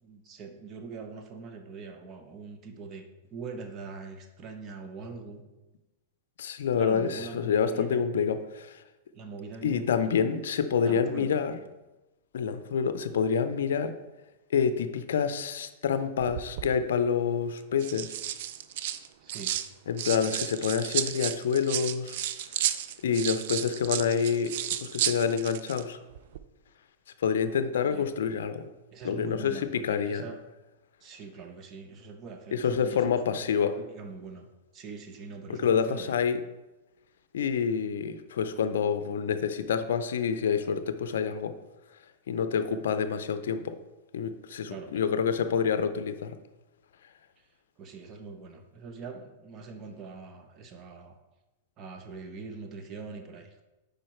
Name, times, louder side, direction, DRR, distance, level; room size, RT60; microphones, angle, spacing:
voice 1, 0.0-5.4 6.7-8.1 9.1-9.9 10.8-11.3 19.2-19.6 27.9-28.1 28.9-30.4 31.0-34.5 34.7-36.1 44.7-45.0 47.4-47.5 47.8-51.2 51.8-53.6, right 4 dB, 35° right, 5 dB, 0.9 m, -43 dB
voice 2, 6.4-8.8 9.6-11.5 12.3-13.9 14.5-18.1 19.9-22.2 23.0-24.5 24.8-26.0 27.2-28.7 29.0-30.2 32.5-33.7 35.6-36.4 37.3-41.5 42.3-43.7 44.1-46.4, left 7 dB, 80° left, 10 dB, 0.4 m, -27 dB
sound 1, 16.2-16.7 17.6-19.7 20.0-25.8 26.1-26.4, right 12 dB, 60° right, 0.3 m, -33 dB
5.0 x 4.6 x 4.3 m, 1.0 s
hypercardioid pair, 120°, 0 cm